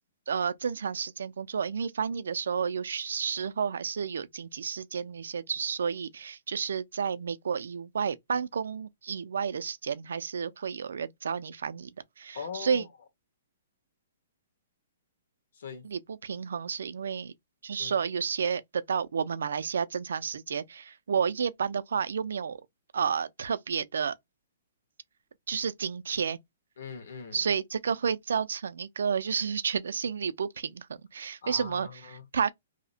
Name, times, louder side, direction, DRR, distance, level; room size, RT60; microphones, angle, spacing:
voice 1, 0.3-11.9 12.2-12.8 15.8-17.3 17.6-22.6 22.9-24.2 25.5-26.4 27.3-30.9 31.1-31.9 32.3-32.5, right 6 dB, 85° right, 0.4 m, -31 dB
voice 2, 12.3-12.9 15.5-15.9 17.8-18.0 26.8-27.4 31.4-32.3, left 6 dB, 65° left, 1.1 m, -41 dB
2.7 x 2.1 x 2.7 m
hypercardioid pair, 175°, 0 cm